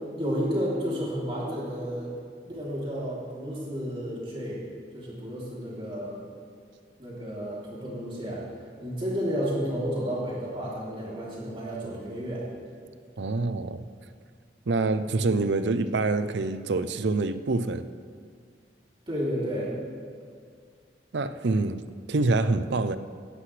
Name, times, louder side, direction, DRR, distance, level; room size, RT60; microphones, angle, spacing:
voice 1, 0.1-2.1 2.4-4.6 4.9-6.2 7.0-8.5 8.8-12.4 19.1-19.7, equal, 30° right, -6 dB, 3.1 m, -31 dB
voice 2, 13.2-13.8 14.7-17.8 21.1-21.8 22.1-23.0, right 3 dB, 80° right, 12 dB, 0.6 m, -26 dB
17.0 x 11.5 x 3.3 m, 2.1 s
head